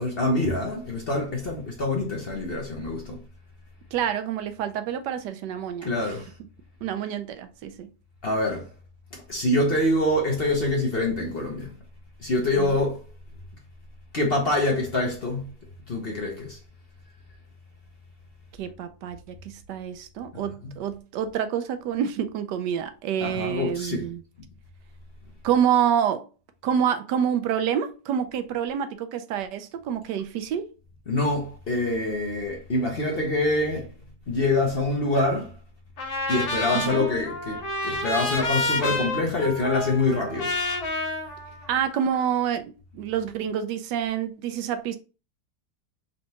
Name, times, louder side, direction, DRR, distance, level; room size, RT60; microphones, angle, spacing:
voice 1, 0.0-3.2 5.8-6.3 8.2-8.7 9.1-11.7 12.2-13.0 14.1-15.5 15.9-16.6 20.6-20.7 23.2-24.1 31.1-33.9 34.3-35.5 36.3-40.5, left 2 dB, 45° left, 0.9 m, -25 dB
voice 2, 3.9-5.9 6.8-7.9 12.6-12.8 18.6-24.2 25.4-26.3 26.6-30.7 36.7-37.1 41.7-45.0, right 9 dB, 80° right, 1.2 m, -27 dB
Trumpet, 36.0-42.2, left 2 dB, 60° left, 1.4 m, -29 dB
4.1 x 3.3 x 2.8 m
omnidirectional pair, 1.9 m